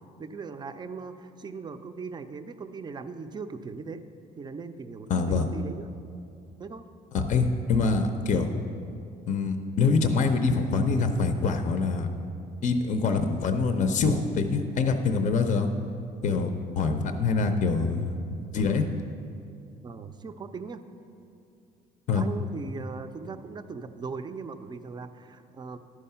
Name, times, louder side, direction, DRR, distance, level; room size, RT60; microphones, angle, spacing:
voice 1, 0.2-4.0 4.4-5.9 6.6-6.9 19.8-20.8 22.1-25.8, right 4 dB, 25° right, 9 dB, 0.4 m, -39 dB
voice 2, 5.1-5.5 7.1-8.5 9.3-12.1 12.6-15.7 16.2-16.5 16.8-18.1 18.5-18.9 22.1-22.2, left 4 dB, 45° left, 7 dB, 0.5 m, -25 dB
11.5 x 4.7 x 5.6 m, 2.6 s
cardioid pair, 110°, 17 cm